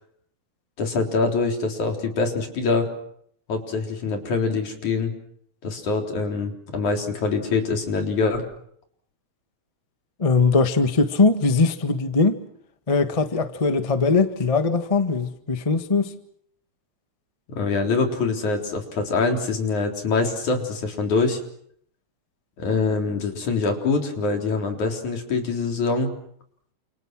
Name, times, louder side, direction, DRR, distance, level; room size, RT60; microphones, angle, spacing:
voice 1, 0.8-2.9 3.5-5.1 5.6-8.5 17.5-21.4 22.6-26.1, left 4 dB, 80° left, 3 dB, 5.3 m, -24 dB
voice 2, 10.2-12.4 12.9-16.1, left 4 dB, 20° left, 8 dB, 0.9 m, -20 dB
29.5 x 28.0 x 6.2 m, 0.69 s
omnidirectional pair, 3.4 m